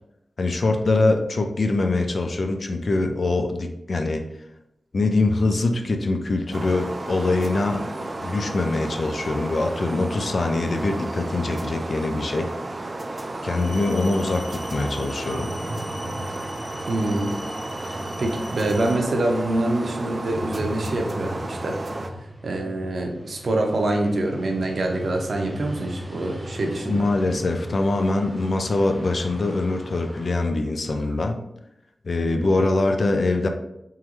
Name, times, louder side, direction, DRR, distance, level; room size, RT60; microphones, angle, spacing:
voice 1, 0.4-4.2 4.9-7.9 8.2-12.5 13.4-15.5 26.9-31.4 32.0-33.5, left 2 dB, 55° left, 5 dB, 0.4 m, -23 dB
sound 1, 6.5-22.1, right 2 dB, 40° right, 0.3 m, -33 dB
sound 2, 13.5-18.9, left 1 dB, 35° left, 0.8 m, -42 dB
sound 3, 15.1-30.3, equal, 5° right, 0.9 m, -38 dB
voice 2, 16.9-17.4 17.8-21.8 22.4-27.0, right 2 dB, 70° right, 2 dB, 0.7 m, -25 dB
3.7 x 3.0 x 3.1 m, 0.85 s
wide cardioid pair, 120°, 0 cm